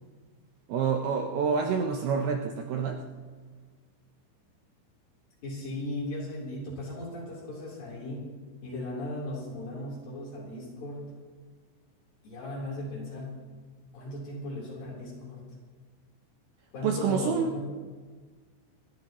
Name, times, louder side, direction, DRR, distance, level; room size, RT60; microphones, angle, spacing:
voice 1, 0.7-3.0 16.8-17.5, right 6 dB, 75° right, 3 dB, 2.5 m, -27 dB
voice 2, 5.4-8.3 8.6-11.1 12.2-13.4 13.9-15.5 16.7-17.7, left 1 dB, 50° left, -4 dB, 5.2 m, -37 dB
28.0 x 13.5 x 3.0 m, 1.5 s
omnidirectional pair, 5.5 m